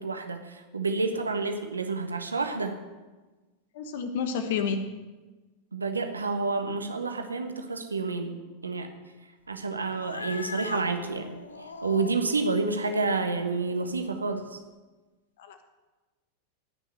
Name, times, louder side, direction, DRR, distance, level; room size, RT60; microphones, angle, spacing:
voice 1, 0.0-2.8 5.7-8.4 8.6-9.0 9.5-11.3 11.8-14.6, right 3 dB, 75° right, 6 dB, 1.5 m, -29 dB
voice 2, 3.7-4.8 15.4-15.6, left 6 dB, 55° left, 8 dB, 1.5 m, -30 dB
Cat, 9.9-14.5, left 4 dB, 70° left, 0.8 m, -41 dB
17.5 x 6.3 x 7.9 m, 1.2 s
figure-of-eight pair, 90°, 0 cm